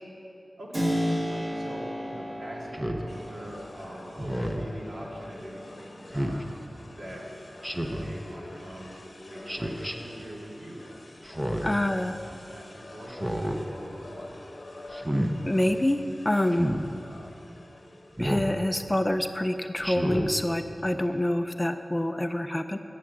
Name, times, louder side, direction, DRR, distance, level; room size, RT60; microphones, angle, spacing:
voice 1, 0.6-0.9 1.2-6.5 6.9-7.3 7.6-10.8 11.6-12.0 12.2-14.4, right 1 dB, 65° right, -4 dB, 2.2 m, -44 dB
Keyboard (musical), 0.7-9.3, equal, 35° right, 1.6 m, -35 dB
Speech synthesizer, 2.7-3.1 4.2-4.7 6.1-6.4 7.6-8.1 9.5-9.9 11.2-11.8 13.1-13.6 14.9-15.3 16.5-16.8 18.2-18.5 19.8-20.3, equal, 15° right, 0.7 m, -30 dB
sound 1, 3.1-18.7, left 2 dB, 45° left, 0.9 m, -46 dB
voice 2, 11.6-12.2 15.5-16.8 18.2-22.8, left 1 dB, 15° left, 8 dB, 0.4 m, -26 dB
9.3 x 7.6 x 7.2 m, 2.8 s
wide cardioid pair, 80°, 0 cm